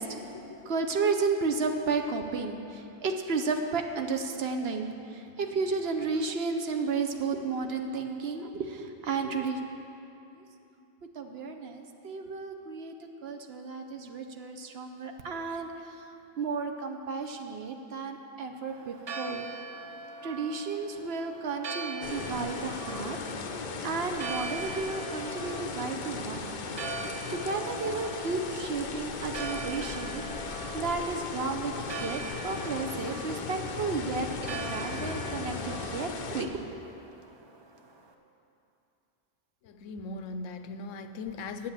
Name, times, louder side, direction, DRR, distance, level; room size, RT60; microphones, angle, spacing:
voice 1, 0.0-0.3 0.6-9.6 11.2-12.9 13.2-15.7 16.4-19.5 20.2-23.2 23.8-26.6 27.3-36.8, right 4 dB, 60° right, 4 dB, 0.8 m, -33 dB
Church bell, 18.7-38.1, right 4 dB, 40° right, 0.4 m, -42 dB
sound 1, 22.0-36.5, left 4 dB, 50° left, 0.6 m, -37 dB
voice 2, 39.6-41.7, left 3 dB, 80° left, 9 dB, 1.0 m, -39 dB
8.8 x 7.6 x 7.3 m, 2.8 s
omnidirectional pair, 1.3 m